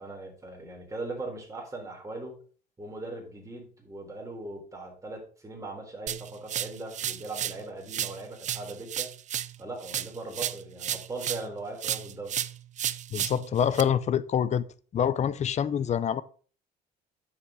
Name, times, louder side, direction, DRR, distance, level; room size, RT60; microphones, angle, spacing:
voice 1, 0.0-2.4 2.8-9.1 9.6-12.3, right 2 dB, 20° right, 3.7 m, -39 dB
sound 1, 6.1-7.6 7.9-11.5 11.8-13.8, right 10 dB, 45° right, 0.5 m, -33 dB
voice 2, 13.1-14.6 14.9-16.2, left 8 dB, 40° left, 0.6 m, -26 dB
9.4 x 7.3 x 3.8 m
cardioid pair, 110°, 17 cm